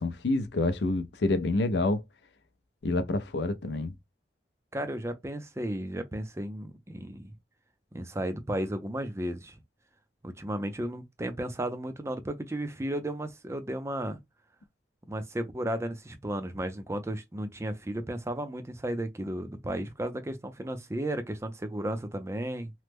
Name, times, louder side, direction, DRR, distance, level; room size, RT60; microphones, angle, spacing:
voice 1, 0.0-2.0 2.8-3.9, left 2 dB, 75° left, 0.5 m, -27 dB
voice 2, 4.7-7.3 7.9-9.6 10.2-14.2 15.1-22.7, right 1 dB, 15° right, 0.4 m, -34 dB
3.1 x 2.0 x 3.3 m
head